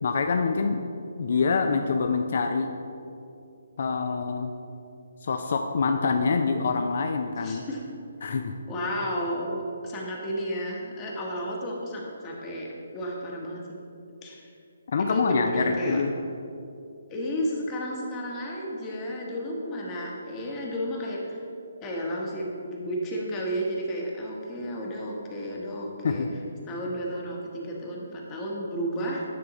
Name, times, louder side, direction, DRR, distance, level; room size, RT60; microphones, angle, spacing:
voice 1, 0.0-0.8 1.2-2.7 3.8-4.5 5.2-7.6 8.2-8.5 14.9-16.1 26.0-26.3, left 4 dB, 60° left, 5 dB, 0.4 m, -25 dB
voice 2, 7.4-7.8 8.7-12.7 12.9-13.8 14.2-14.5 15.0-16.0 17.1-21.4 21.8-26.3 26.7-29.2, equal, 20° left, -2 dB, 1.0 m, -32 dB
9.3 x 3.6 x 4.1 m, 2.6 s
hypercardioid pair, 150°, 0 cm